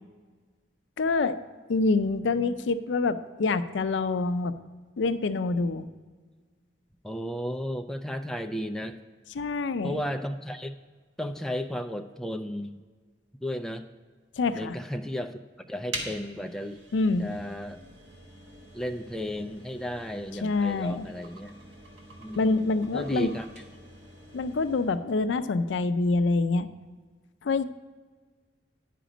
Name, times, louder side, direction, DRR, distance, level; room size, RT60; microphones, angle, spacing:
voice 1, 1.0-1.4 1.7-4.5 5.0-5.9 9.3-10.0 14.4-14.8 16.9-17.3 20.4-21.1 22.4-23.3 24.3-26.7 27.4-27.6, left 3 dB, 80° left, 11 dB, 0.4 m, -26 dB
voice 2, 7.0-9.0 9.8-10.7 11.2-12.7 13.4-13.8 14.5-15.4 15.7-16.8 17.2-17.8 18.7-21.5 22.2-22.7 22.9-23.5, equal, 5° left, 5 dB, 0.3 m, -34 dB
sound 1, 15.9-25.0, right 1 dB, 80° right, 1.6 m, -45 dB
10.0 x 5.1 x 5.0 m, 1.5 s
head